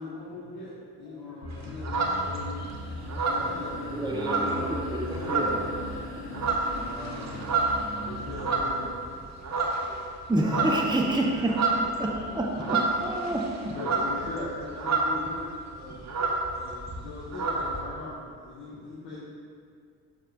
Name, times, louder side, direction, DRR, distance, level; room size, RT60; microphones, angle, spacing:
voice 1, 0.0-2.6 3.2-5.8 6.7-7.3 7.8-8.9 13.7-16.0 16.5-19.2, left 2 dB, 55° left, -9 dB, 1.9 m, -40 dB
voice 2, 1.0-1.7 2.0-2.3 5.1-5.6 5.9-7.9 9.3-10.0 11.0-11.5 11.8-12.7 13.2-14.0 15.6-15.7 16.0-16.5 17.6-17.7, equal, 80° right, -7 dB, 1.6 m, -44 dB
sound 1, 1.4-8.8, equal, 90° left, 1.3 m, -40 dB
sound 2, 1.5-2.6 3.0-4.9 5.2-5.7 6.1-9.1 9.4-10.0 10.2-15.3 15.6-15.7 15.9-17.8, right 3 dB, 35° right, 1.4 m, -29 dB
sound 3, 2.0-10.0, left 2 dB, 25° left, 1.5 m, -44 dB
voice 3, 3.9-5.0 10.3-11.6 12.0-13.4, right 1 dB, 10° right, -1 dB, 1.0 m, -28 dB
12.5 x 6.5 x 2.7 m, 2.3 s
figure-of-eight pair, 45°, 48 cm